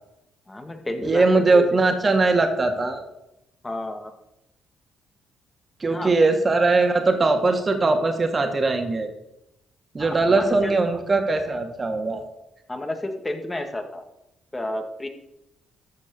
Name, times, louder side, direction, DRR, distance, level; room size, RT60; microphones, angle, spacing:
voice 1, 0.5-1.7 3.6-4.1 5.9-6.1 10.0-10.8 12.7-14.0 14.5-15.1, left 1 dB, 15° left, 5 dB, 1.8 m, -31 dB
voice 2, 1.0-3.0 5.8-9.1 9.9-12.2, right 3 dB, 30° right, 5 dB, 2.2 m, -20 dB
13.5 x 5.4 x 6.9 m, 0.85 s
cardioid pair, 90°, 0 cm